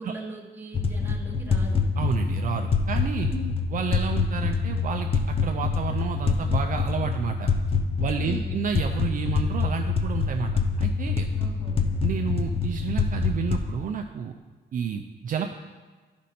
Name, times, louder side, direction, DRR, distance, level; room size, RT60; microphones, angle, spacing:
voice 1, 0.0-1.9 3.3-3.5 8.2-8.6 11.4-11.8, right 1 dB, 10° right, -1 dB, 1.1 m, -39 dB
sound 1, 0.7-13.7, left 5 dB, 30° left, 0.5 m, -26 dB
voice 2, 2.0-3.3 3.7-7.5 8.0-10.5 10.8-11.3 12.0-14.3 14.7-15.5, right 7 dB, 50° right, 4 dB, 0.4 m, -30 dB
11.5 x 5.2 x 4.2 m, 1.4 s
wide cardioid pair, 160°, 18 cm